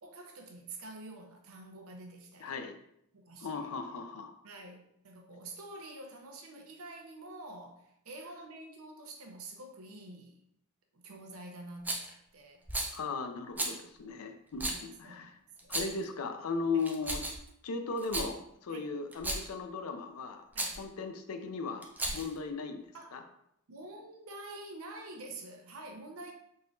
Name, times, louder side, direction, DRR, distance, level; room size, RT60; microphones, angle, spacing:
voice 1, 0.0-2.6 3.1-3.7 4.4-10.4 10.9-12.6 13.6-13.8 14.6-15.3 15.6-15.8 16.7-16.8 18.7-18.9 20.5-20.7 22.1-22.2 22.9-23.2 23.7-26.3, right 2 dB, 75° right, 2 dB, 0.7 m, -47 dB
voice 2, 2.4-2.8 3.4-4.3 12.9-15.4 15.7-17.3 17.6-20.4 20.8-23.2, left 4 dB, 80° left, 7 dB, 0.5 m, -37 dB
Rattle, 11.8-12.1 12.7-13.0 13.6-13.8 14.6-14.8 15.6-16.0 16.8-17.5 18.0-18.3 19.1-19.5 20.5-20.8 21.8-22.4, right 2 dB, 10° right, 0.3 m, -34 dB
3.7 x 3.0 x 2.6 m, 0.74 s
head